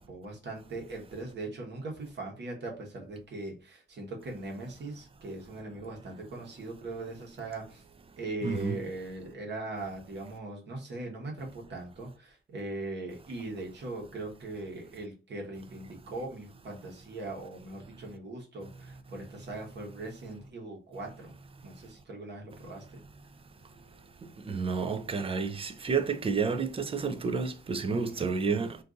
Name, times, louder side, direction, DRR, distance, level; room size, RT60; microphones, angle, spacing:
voice 1, 0.0-7.8 8.2-21.3 21.6-23.0 27.9-28.3, right 2 dB, 55° right, 1.1 m, -40 dB
voice 2, 8.4-8.8 24.5-28.8, right 5 dB, 25° right, 0.4 m, -30 dB
2.6 x 2.5 x 3.7 m
wide cardioid pair, 130°, 21 cm